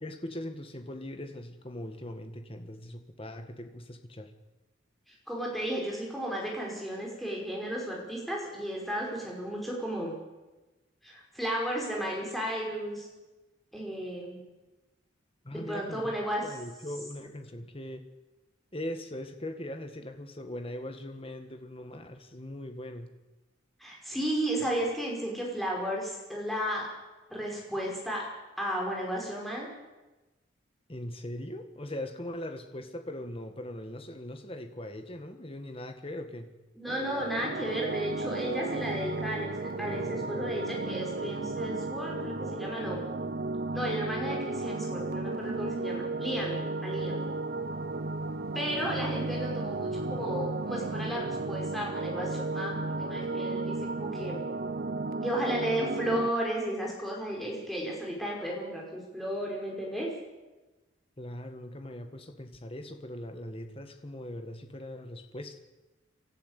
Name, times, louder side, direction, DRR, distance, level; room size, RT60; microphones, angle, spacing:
voice 1, 0.0-4.3 15.4-16.2 16.4-18.1 18.7-23.1 30.9-36.5 61.2-65.6, left 1 dB, 25° left, 6 dB, 1.7 m, -40 dB
voice 2, 5.3-10.1 11.0-13.1 13.7-14.4 15.5-16.4 23.8-26.9 27.3-28.2 28.6-29.7 36.8-43.0 43.7-47.2 48.5-54.4 55.2-60.1, right 1 dB, ahead, -2 dB, 5.4 m, -33 dB
sound 1, 36.9-56.3, right 2 dB, 50° right, 0.7 m, -34 dB
25.0 x 13.5 x 8.3 m, 1.1 s
head